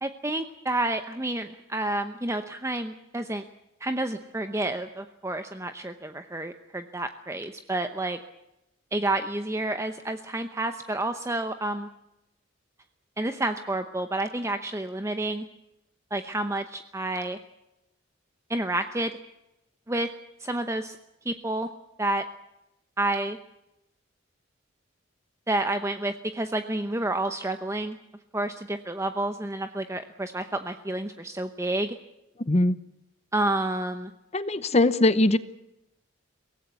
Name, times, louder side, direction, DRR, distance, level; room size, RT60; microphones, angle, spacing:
voice 1, 0.0-3.4 3.8-8.2 8.9-11.9 13.2-15.5 16.1-17.4 18.5-19.1 19.9-20.1 20.4-21.0 21.2-21.7 22.0-22.2 23.0-23.4 25.5-28.0 28.3-32.0 33.3-34.1, right 2 dB, 15° right, 8 dB, 0.9 m, -29 dB
voice 2, 34.3-35.4, left 2 dB, 35° left, 15 dB, 0.8 m, -21 dB
23.5 x 18.0 x 8.3 m, 0.90 s
head